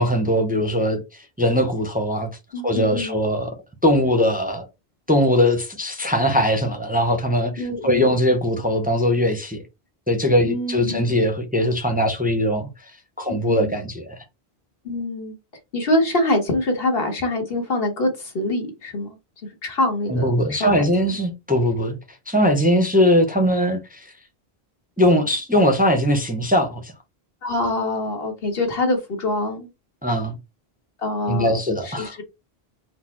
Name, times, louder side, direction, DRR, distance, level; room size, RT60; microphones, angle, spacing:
voice 1, 0.0-2.3 2.6-3.5 3.8-4.7 5.1-9.6 10.1-12.7 13.2-14.2 20.1-22.0 22.3-24.1 25.0-26.9 30.0-30.4 31.3-32.2, equal, 10° right, 0.6 m, -20 dB
voice 2, 2.5-3.2 7.6-8.1 10.4-11.1 13.3-13.7 14.8-15.3 15.7-19.2 19.6-21.2 27.4-29.7 31.0-31.6 31.8-32.2, left 1 dB, 70° left, 1.6 m, -25 dB
4.2 x 2.1 x 4.3 m
omnidirectional pair, 1.0 m